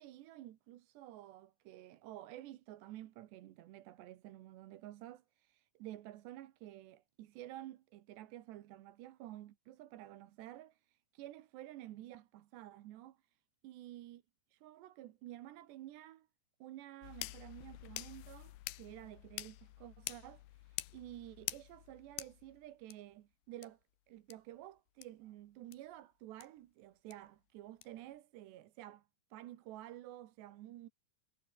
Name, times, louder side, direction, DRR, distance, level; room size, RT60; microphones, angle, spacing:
voice 1, 0.0-14.2 14.5-16.3 16.6-23.8 24.1-30.9, right 14 dB, 80° right, 3.4 m, -51 dB
sound 1, 17.0-22.9 23.6-23.7 24.3-24.4 25.0-25.1 25.7-25.8 26.4-26.5 27.1-27.2 27.8-27.9, left 16 dB, 75° left, 2.6 m, -46 dB
omnidirectional pair, 5.0 m